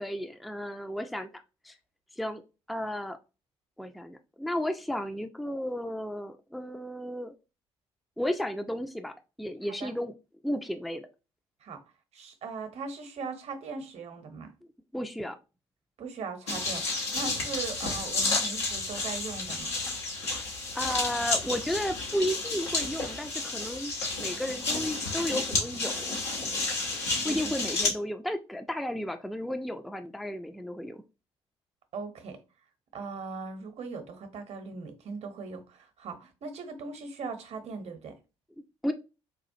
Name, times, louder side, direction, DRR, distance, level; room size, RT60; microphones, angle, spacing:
voice 1, 0.0-1.7 2.2-2.4 2.7-3.2 3.8-7.4 8.2-9.1 9.4-10.1 10.4-11.1 14.9-15.4 20.7-26.2 27.2-31.0 38.8-38.9, equal, ahead, 0.4 m, -33 dB
voice 2, 12.1-14.5 16.0-19.7 27.2-27.5 31.9-32.4 32.9-38.1, right 4 dB, 50° right, 0.8 m, -39 dB
sound 1, 16.5-27.9, left 3 dB, 85° left, 0.9 m, -31 dB
4.1 x 2.4 x 2.7 m
hypercardioid pair, 45°, 14 cm